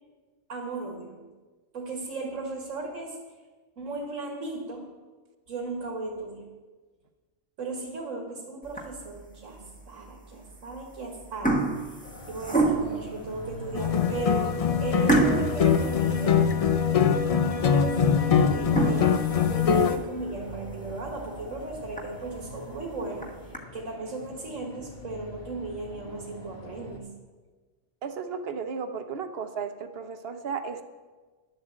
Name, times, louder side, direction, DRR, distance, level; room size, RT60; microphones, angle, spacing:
voice 1, 0.5-1.2 1.7-3.2 3.8-4.9 5.5-6.5 7.6-11.7 12.3-14.5 14.8-16.7 17.4-23.3 23.7-27.1, right 3 dB, 85° right, 0 dB, 2.0 m, -36 dB
sound 1, 8.6-9.2 9.7-9.9 10.7-11.0 11.2-13.1 13.7-13.8 14.2-14.3 15.1-16.8 17.3-17.4 17.8-17.9 18.6-20.2 20.6-20.7 21.1-21.2 21.6-21.7 22.0-22.1 23.0-23.6, right 2 dB, 5° left, 1.1 m, -27 dB
sound 2, 12.0-27.0, left 1 dB, 40° left, 1.4 m, -44 dB
sound 3, 13.7-20.0, left 7 dB, 55° left, 0.4 m, -23 dB
voice 2, 28.0-30.8, right 6 dB, 55° right, 9 dB, 1.0 m, -34 dB
11.0 x 7.6 x 7.6 m, 1.4 s
omnidirectional pair, 1.3 m